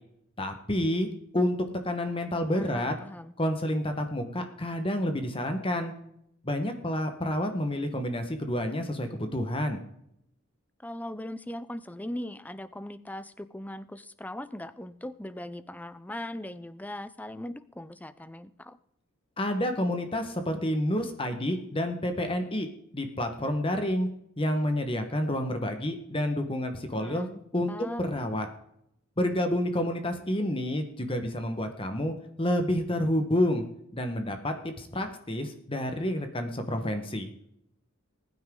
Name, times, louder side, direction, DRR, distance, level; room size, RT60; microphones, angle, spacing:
voice 1, 0.4-1.1 1.3-1.5 1.8-2.9 3.4-5.9 6.4-9.8 19.4-22.7 22.9-24.1 24.4-27.3 27.5-27.7 28.0-28.5 29.2-33.6 33.9-37.3, left 1 dB, 25° left, 6 dB, 1.3 m, -29 dB
voice 2, 2.5-3.3 10.8-18.8 26.9-27.4 27.7-28.0, left 1 dB, 5° left, 14 dB, 0.5 m, -39 dB
20.5 x 9.6 x 3.8 m, 0.76 s
head